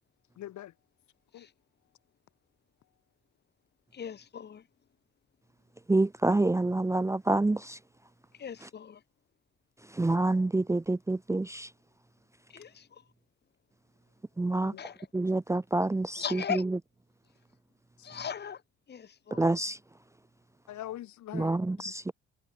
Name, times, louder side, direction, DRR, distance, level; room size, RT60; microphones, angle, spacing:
voice 1, 0.4-0.7 1.3-1.5 14.6-14.8 18.0-18.1 20.7-21.9, left 13 dB, 75° left, 4.4 m, -43 dB
voice 2, 3.9-4.7 8.3-9.0 12.5-13.0 14.8-15.1 16.1-16.7 18.0-18.6 18.9-19.5, left 7 dB, 35° left, 2.5 m, -38 dB
voice 3, 5.9-7.8 10.0-11.7 14.4-14.7 15.1-16.4 19.4-19.8 21.3-22.1, right 2 dB, 10° right, 0.8 m, -27 dB
cardioid pair, 160°, 29 cm